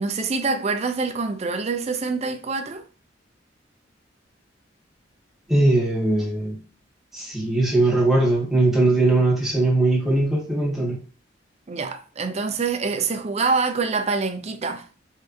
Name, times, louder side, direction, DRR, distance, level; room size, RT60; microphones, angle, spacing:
voice 1, 0.0-2.8 11.7-14.9, right 4 dB, 35° right, 0.5 m, -25 dB
voice 2, 5.5-6.6 7.1-11.0, right 2 dB, ahead, 1.8 m, -20 dB
4.7 x 3.3 x 2.6 m
head